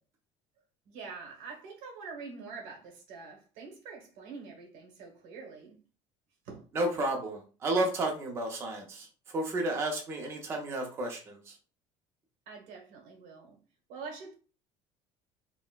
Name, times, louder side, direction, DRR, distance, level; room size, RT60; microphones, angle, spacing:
voice 1, 0.8-5.8 6.4-6.7 12.5-13.6 13.9-14.3, right 4 dB, 85° right, 1.1 m, -45 dB
voice 2, 6.7-11.5, right 1 dB, 20° right, 0.5 m, -32 dB
3.9 x 2.1 x 2.3 m
cardioid pair, 180°, 12 cm